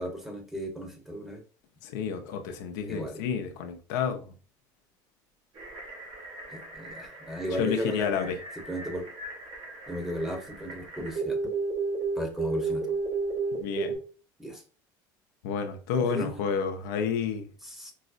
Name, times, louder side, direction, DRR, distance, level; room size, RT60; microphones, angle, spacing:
voice 1, 0.0-1.4 2.9-3.2 6.5-8.3 8.7-9.0 9.9-11.5 12.1-12.9 14.4-14.6 16.0-16.3 17.6-17.9, equal, 5° right, 0.9 m, -35 dB
voice 2, 1.8-4.3 7.6-8.4 13.5-13.9 15.4-17.5, left 6 dB, 85° left, 0.5 m, -30 dB
sound 1, 5.6-14.0, right 4 dB, 60° right, 1.2 m, -34 dB
4.6 x 2.0 x 2.5 m
supercardioid pair, 105°, 10 cm